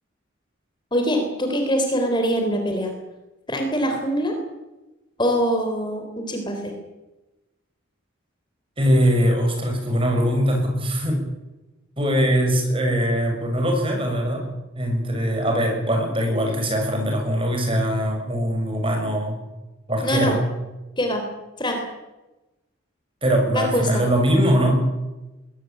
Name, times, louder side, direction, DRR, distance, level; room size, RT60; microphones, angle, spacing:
voice 1, 0.9-2.9 3.5-4.3 5.2-6.7 20.0-20.4 21.0-21.2 21.6-21.8 23.5-24.0, equal, 20° left, 4 dB, 3.8 m, -23 dB
voice 2, 8.8-11.2 12.0-19.4 19.9-20.4 23.2-24.8, equal, 25° right, 3 dB, 6.8 m, -21 dB
22.0 x 18.5 x 9.3 m, 1.0 s
head